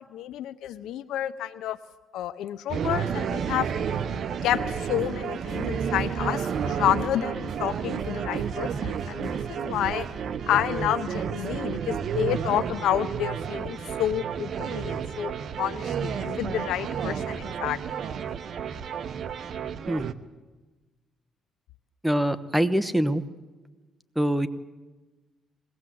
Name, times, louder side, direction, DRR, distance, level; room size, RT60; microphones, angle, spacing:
voice 1, 0.0-1.8 2.1-3.7 4.4-10.1 10.5-15.3 15.6-17.8, left 11 dB, 85° left, 10 dB, 0.6 m, -29 dB
sound 1, 2.7-20.1, right 7 dB, 60° right, 0.9 m, -31 dB
sound 2, 4.5-10.0, right 2 dB, 40° right, 4.7 m, -48 dB
voice 2, 22.0-23.2 24.1-24.5, equal, 5° right, 11 dB, 1.0 m, -24 dB
21.5 x 18.0 x 7.7 m, 1.2 s
cardioid pair, 90°, 0 cm